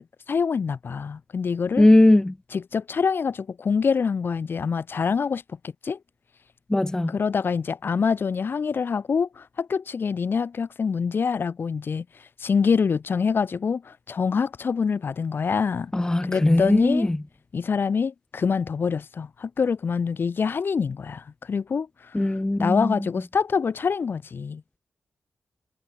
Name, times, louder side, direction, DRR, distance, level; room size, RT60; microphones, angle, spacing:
voice 1, 0.0-1.9 2.5-5.4 5.8-6.0 7.1-12.0 12.4-15.9 16.2-17.1 17.5-22.3 22.6-24.6, left 5 dB, 60° left, 6.4 m, -25 dB
voice 2, 1.8-2.3 6.7-7.1 15.9-17.2 22.1-23.1, left 1 dB, 15° left, 1.2 m, -19 dB
cardioid pair, 50°, 4 cm